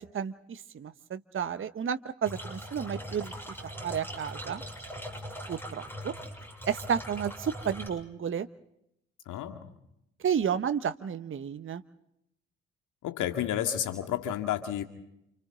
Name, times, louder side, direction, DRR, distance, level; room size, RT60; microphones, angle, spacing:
voice 1, 0.1-3.3 3.8-4.6 5.5-6.1 6.7-8.5 10.2-11.8, right 8 dB, 35° right, 11 dB, 1.1 m, -32 dB
sound 1, 2.2-7.9, equal, 5° left, 6.8 m, -41 dB
voice 2, 9.3-9.6 13.0-14.8, left 10 dB, 65° left, 6 dB, 2.2 m, -31 dB
29.0 x 29.0 x 3.8 m, 0.79 s
hypercardioid pair, 45°, 33 cm